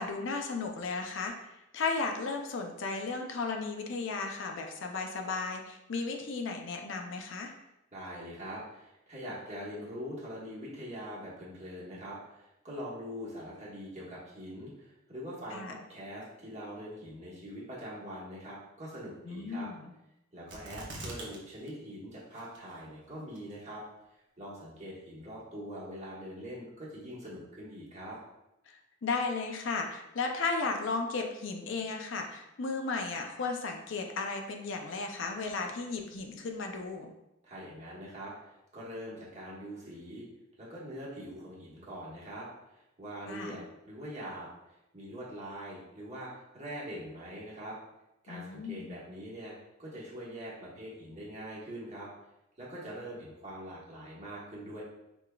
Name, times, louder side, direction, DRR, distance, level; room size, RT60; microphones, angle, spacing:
voice 1, 0.0-1.3 1.7-7.5 15.5-15.8 19.3-19.9 29.0-37.1 43.3-43.6 48.3-49.0, left 4 dB, 65° left, 3 dB, 0.5 m, -35 dB
voice 2, 7.9-19.7 20.3-23.8 24.4-28.2 37.4-40.3 40.6-42.5 42.7-44.5 44.9-47.8 48.2-49.5 49.8-52.1 52.6-54.8, equal, 35° right, -6 dB, 1.2 m, -43 dB
sound 1, 20.5-21.4 21.7-21.8 22.4-22.8 23.4-23.5, right 2 dB, 60° right, 0.8 m, -42 dB
4.9 x 3.5 x 2.3 m, 0.90 s
head